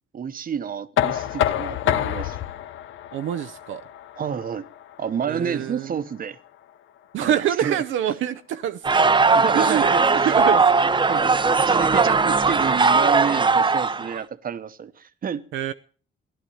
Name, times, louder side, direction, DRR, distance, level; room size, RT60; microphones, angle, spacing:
voice 1, 0.1-2.4 4.2-4.7 5.0-6.4 7.2-7.8 9.3-10.6 11.1-15.4, right 7 dB, 45° right, 1.0 m, -29 dB
Knock, 1.0-6.8, left 11 dB, 75° left, 0.8 m, -28 dB
voice 2, 3.1-3.8 5.3-5.9 7.1-9.1 9.5-9.9 10.3-10.6 15.5-15.7, right 10 dB, 75° right, 0.7 m, -25 dB
sound 1, 8.8-14.2, right 4 dB, 25° right, 0.7 m, -19 dB
15.0 x 11.0 x 7.1 m
cardioid pair, 90°, 20 cm